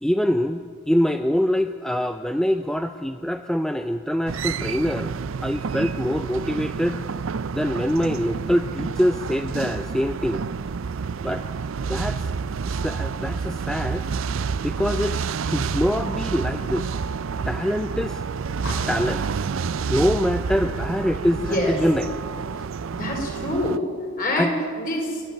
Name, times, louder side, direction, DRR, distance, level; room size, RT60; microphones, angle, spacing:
voice 1, 0.0-5.1 5.4-7.0 7.5-10.4 11.2-11.5 11.9-12.3 12.7-14.0 14.6-16.9 17.5-18.2 18.9-19.2 19.9-22.2 24.4-24.5, equal, 5° left, 8 dB, 0.4 m, -24 dB
sound 1, 4.3-23.8, right 5 dB, 75° right, 0.5 m, -29 dB
sound 2, 18.6-19.2 21.0-21.3 21.6-22.0, left 1 dB, 65° left, 3.6 m, -37 dB
voice 2, 21.3-21.8 22.9-23.8 24.2-25.2, left 1 dB, 40° left, 1 dB, 4.4 m, -26 dB
29.0 x 11.0 x 9.0 m, 2.2 s
head